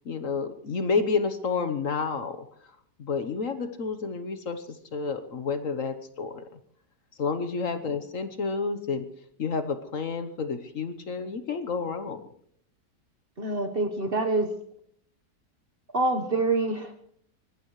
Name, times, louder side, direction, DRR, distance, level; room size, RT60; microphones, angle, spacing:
voice 1, 0.0-2.5 3.0-6.6 7.2-9.1 9.4-12.2, left 5 dB, 50° left, 10 dB, 1.3 m, -30 dB
voice 2, 13.4-14.5 15.9-17.0, right 2 dB, 40° right, 5 dB, 1.2 m, -26 dB
24.0 x 19.0 x 3.2 m, 0.66 s
omnidirectional pair, 1.9 m